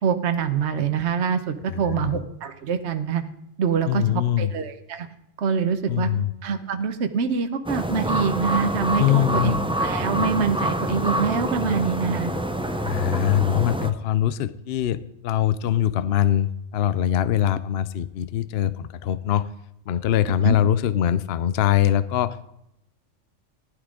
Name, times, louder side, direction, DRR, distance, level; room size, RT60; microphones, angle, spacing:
voice 1, 0.0-3.2 3.6-4.0 4.4-5.1 5.4-6.1 6.4-12.3 20.4-20.6, right 6 dB, 65° right, 8 dB, 1.2 m, -25 dB
voice 2, 1.7-2.2 3.9-4.5 5.9-6.3 9.0-9.6 12.8-19.5 19.9-22.4, left 11 dB, 65° left, 15 dB, 0.7 m, -23 dB
sound 1, 7.7-13.9, equal, 5° right, 0.5 m, -26 dB
15.0 x 11.0 x 3.8 m, 0.81 s
omnidirectional pair, 1.3 m